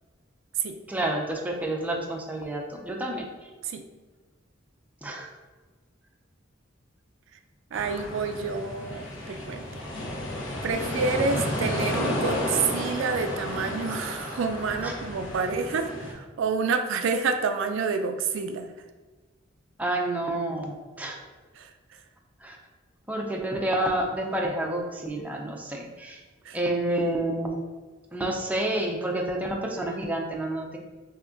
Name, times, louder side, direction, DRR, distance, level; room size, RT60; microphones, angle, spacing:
voice 1, 0.9-3.5 5.0-5.3 14.8-14.9 19.8-21.2 22.4-22.6 23.1-26.2 26.5-27.6 28.1-30.8, right 1 dB, 10° right, 0 dB, 0.5 m, -29 dB
sound 1, 7.7-16.1, left 1 dB, 80° left, 1.1 m, -32 dB
voice 2, 7.7-9.8 10.6-18.7 21.5-22.0 26.4-26.6, right 5 dB, 70° right, 7 dB, 0.4 m, -28 dB
5.8 x 2.8 x 2.5 m, 1.3 s
head